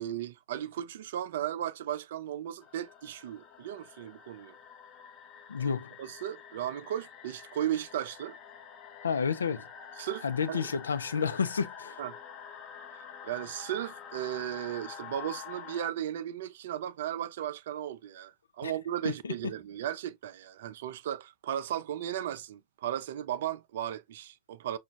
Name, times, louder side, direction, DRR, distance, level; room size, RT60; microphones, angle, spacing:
voice 1, 0.0-4.5 5.6-8.4 10.0-10.7 12.0-12.2 13.2-24.8, right 11 dB, 55° right, 0.4 m, -36 dB
sound 1, 2.6-15.9, left 7 dB, 35° left, 0.7 m, -47 dB
voice 2, 5.5-5.9 9.0-9.7 10.2-12.0 18.6-18.7 19.0-19.5, left 6 dB, 70° left, 0.5 m, -31 dB
5.9 x 2.4 x 2.2 m
figure-of-eight pair, 90°, 0 cm